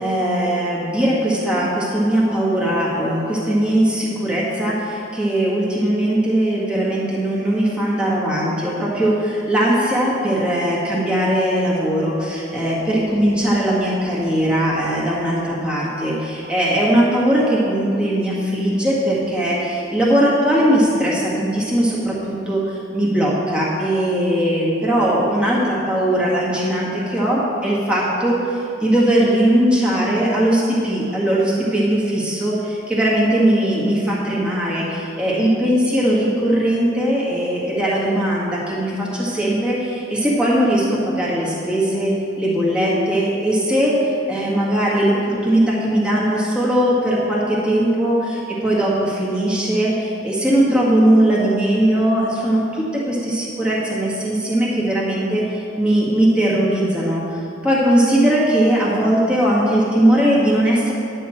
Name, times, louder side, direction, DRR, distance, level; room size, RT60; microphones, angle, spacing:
voice 1, 0.0-42.1 42.4-55.4 55.8-60.9, right 1 dB, 5° right, -7 dB, 1.8 m, -19 dB
10.0 x 5.7 x 7.6 m, 2.8 s
head